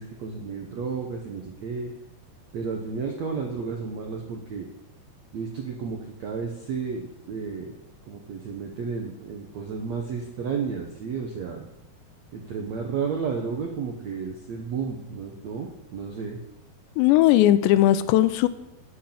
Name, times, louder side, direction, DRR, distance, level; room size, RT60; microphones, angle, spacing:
voice 1, 0.0-1.9 2.5-4.7 5.3-7.7 8.1-11.7 12.3-16.4, right 5 dB, 75° right, 2 dB, 1.6 m, -32 dB
voice 2, 17.0-18.5, left 13 dB, 90° left, 13 dB, 2.9 m, -18 dB
12.0 x 6.6 x 8.7 m, 0.91 s
omnidirectional pair, 5.0 m